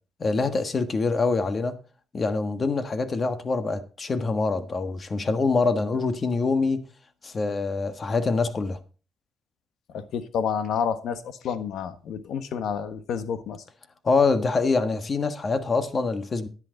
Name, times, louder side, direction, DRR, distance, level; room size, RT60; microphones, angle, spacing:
voice 1, 0.2-1.7 2.1-6.8 7.2-8.8 14.0-16.5, left 4 dB, 35° left, 1.5 m, -25 dB
voice 2, 9.9-13.6, left 7 dB, 75° left, 1.3 m, -29 dB
10.5 x 10.5 x 3.9 m
cardioid pair, 90°, 0 cm